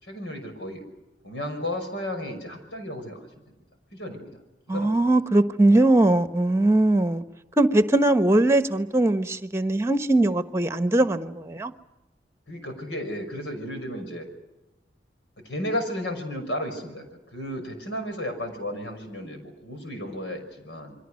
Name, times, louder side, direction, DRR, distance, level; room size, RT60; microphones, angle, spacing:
voice 1, 0.0-0.8 1.2-3.3 3.9-4.4 4.7-5.1 12.5-14.2 15.4-21.0, left 1 dB, 85° left, 6.0 m, -33 dB
voice 2, 4.7-7.2 7.6-11.7, right 2 dB, 15° right, 1.1 m, -20 dB
28.5 x 23.0 x 6.5 m
head